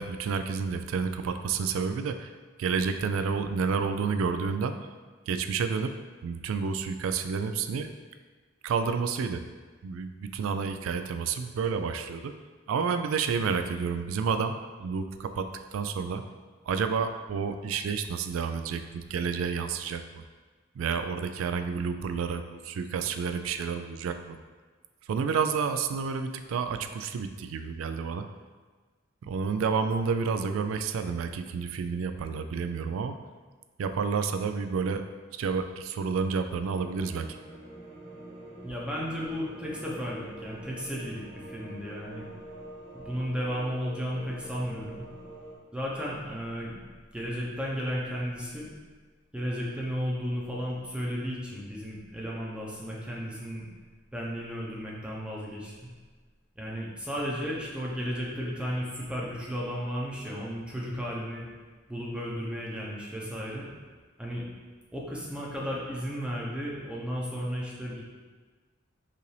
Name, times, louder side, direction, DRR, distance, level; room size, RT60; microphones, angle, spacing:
voice 1, 0.0-2.3 2.6-4.8 5.3-6.0 6.2-7.9 8.6-9.4 9.8-12.3 12.7-16.2 16.7-20.2 20.8-24.4 25.1-28.3 29.2-33.2 33.8-35.0 35.3-37.3, right 5 dB, 80° right, 8 dB, 0.3 m, -30 dB
sound 1, 36.7-45.6, right 1 dB, 35° right, 1.0 m, -46 dB
voice 2, 38.6-42.3 42.9-45.1 45.7-46.8 47.1-48.7 49.3-53.7 54.1-55.7 56.6-61.4 61.9-63.7 64.2-64.4 64.9-68.0, equal, 5° right, -4 dB, 0.7 m, -34 dB
5.5 x 2.6 x 3.2 m, 1.4 s
head